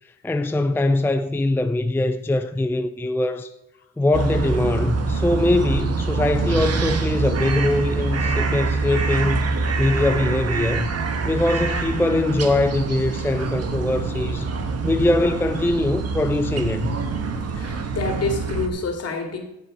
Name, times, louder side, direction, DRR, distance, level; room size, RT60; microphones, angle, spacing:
voice 1, 0.2-3.5 4.0-9.5 9.8-10.9 11.3-14.5 14.8-17.0, left 2 dB, 5° left, 0.5 m, -22 dB
sound 1, 4.1-18.7, right 4 dB, 55° right, 1.6 m, -25 dB
voice 2, 17.5-19.4, left 3 dB, 55° left, 2.6 m, -27 dB
15.0 x 7.0 x 4.8 m
cardioid pair, 90°, 30 cm